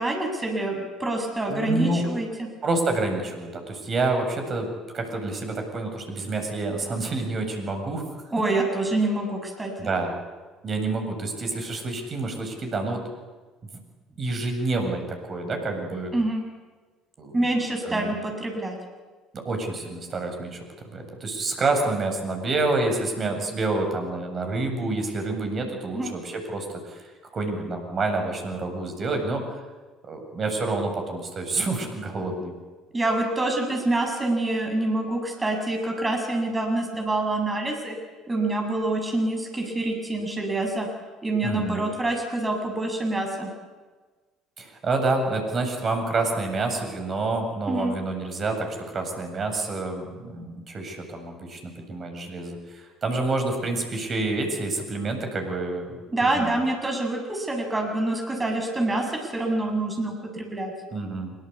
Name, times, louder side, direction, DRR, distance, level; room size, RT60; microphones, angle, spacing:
voice 1, 0.0-2.5 8.3-9.7 16.1-16.4 17.3-18.8 25.9-26.1 32.9-38.0 38.3-40.9 41.2-43.5 47.7-47.9 56.1-60.7, right 2 dB, 20° right, 3 dB, 7.2 m, -26 dB
voice 2, 1.5-2.0 2.6-4.7 4.9-8.1 9.8-10.2 10.6-13.1 14.2-16.2 17.2-17.5 17.8-18.1 19.3-20.6 20.9-29.6 30.0-32.5 41.4-41.9 44.6-56.0 56.3-56.6 60.9-61.3, right 3 dB, 35° right, 5 dB, 7.8 m, -28 dB
26.5 x 24.5 x 8.5 m, 1.3 s
figure-of-eight pair, 55°, 0 cm